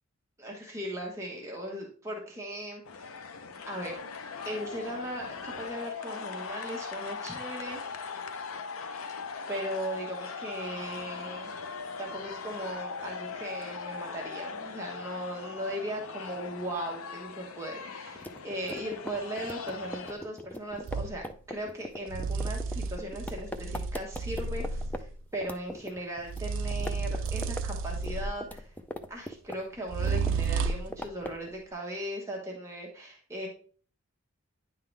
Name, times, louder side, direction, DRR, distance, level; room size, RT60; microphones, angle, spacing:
voice 1, 0.4-3.1 3.7-4.0 4.4-7.8 9.5-11.5 12.0-28.7 29.1-33.5, right 1 dB, 15° right, -1 dB, 1.0 m, -38 dB
sound 1, 2.9-20.1, left 5 dB, 90° left, 0.6 m, -40 dB
sound 2, 18.1-25.0 25.3-26.4 26.7-27.7 27.9-29.8 30.1-31.5, left 1 dB, 10° left, 0.4 m, -40 dB
sound 3, 20.8-21.2 22.1-25.1 26.3-28.5 29.9-31.0, right 4 dB, 65° right, 0.4 m, -32 dB
9.6 x 3.8 x 3.2 m, 0.43 s
head